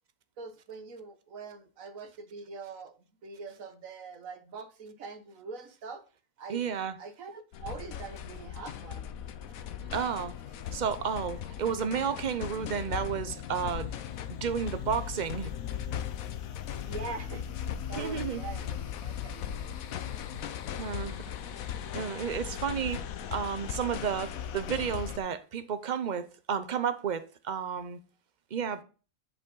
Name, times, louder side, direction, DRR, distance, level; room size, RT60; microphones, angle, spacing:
voice 1, 0.4-2.9 3.2-6.0 6.4-6.6 7.0-9.1 16.8-17.6 17.9-19.7, right 4 dB, 75° right, 1.5 m, -43 dB
voice 2, 6.5-6.9 9.9-10.3 10.7-13.9 14.4-15.5 18.0-18.4 20.8-21.1 21.9-23.1 23.3-28.0 28.5-28.8, right 7 dB, 40° right, 0.7 m, -32 dB
sound 1, 7.5-25.2, left 9 dB, 80° left, 1.2 m, -38 dB
10.0 x 5.3 x 3.8 m
omnidirectional pair, 1.4 m